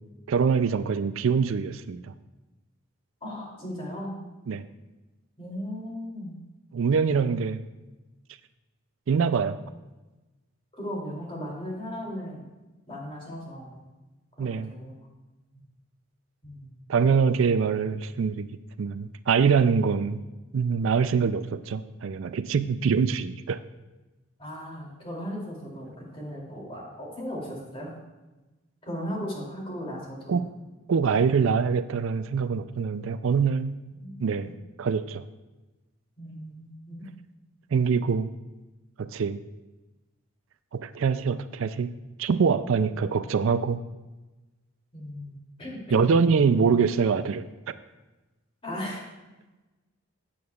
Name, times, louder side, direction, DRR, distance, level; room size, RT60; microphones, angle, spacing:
voice 1, 0.3-2.1 4.5-4.7 6.7-7.6 9.1-9.6 14.4-14.7 16.9-18.5 18.8-20.2 20.5-23.6 30.3-30.5 30.9-33.8 34.2-34.5 34.8-35.3 37.7-38.3 39.0-39.4 40.7-43.8 45.9-47.8, right 5 dB, 70° right, 13 dB, 0.4 m, -24 dB
voice 2, 3.2-4.1 5.4-6.3 10.7-12.5 12.9-13.8 14.4-15.0 15.5-15.6 16.4-16.8 24.4-27.9 28.8-30.4 33.9-34.5 36.2-37.0 44.9-46.0 48.6-49.1, equal, 25° left, -3 dB, 2.9 m, -37 dB
15.5 x 8.6 x 2.4 m, 1.1 s
head